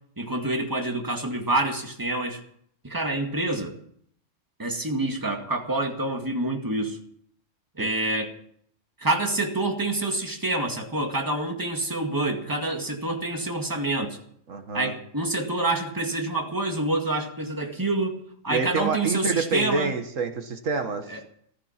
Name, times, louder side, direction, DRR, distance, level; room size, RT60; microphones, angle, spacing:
voice 1, 0.2-2.4 2.8-3.8 4.6-7.0 7.8-8.3 9.0-14.2 14.7-20.0 21.1-21.2, right 2 dB, 15° right, 3 dB, 2.1 m, -27 dB
voice 2, 14.5-14.9 18.5-21.1, right 4 dB, 85° right, 7 dB, 1.9 m, -27 dB
15.5 x 14.5 x 5.9 m, 0.66 s
omnidirectional pair, 1.3 m